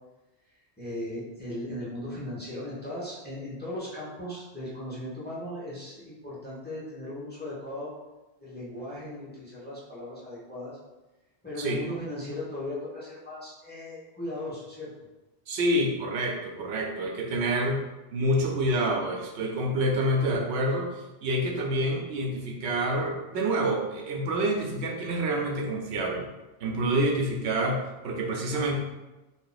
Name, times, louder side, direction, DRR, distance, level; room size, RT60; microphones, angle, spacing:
voice 1, 0.8-7.9 8.4-10.8 11.4-14.9, left 1 dB, 10° left, -9 dB, 0.9 m, -37 dB
voice 2, 15.5-17.8 18.1-20.9 21.2-26.3 26.6-28.7, right 1 dB, 85° right, 0 dB, 0.9 m, -27 dB
2.7 x 2.4 x 3.8 m, 1.1 s
omnidirectional pair, 1.1 m